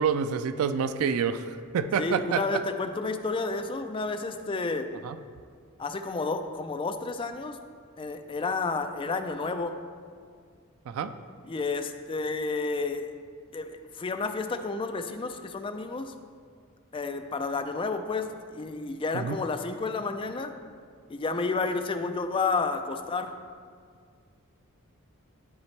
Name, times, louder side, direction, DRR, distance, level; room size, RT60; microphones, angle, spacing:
voice 1, 0.0-2.6 5.0-5.2 10.9-11.1 19.1-19.4, right 6 dB, 75° right, 10 dB, 0.3 m, -28 dB
voice 2, 2.0-4.9 5.8-7.6 8.0-9.7 11.5-13.1 13.5-16.1 16.9-20.5 21.1-23.3, left 3 dB, 25° left, 7 dB, 0.3 m, -31 dB
12.5 x 4.1 x 3.2 m, 2.1 s
head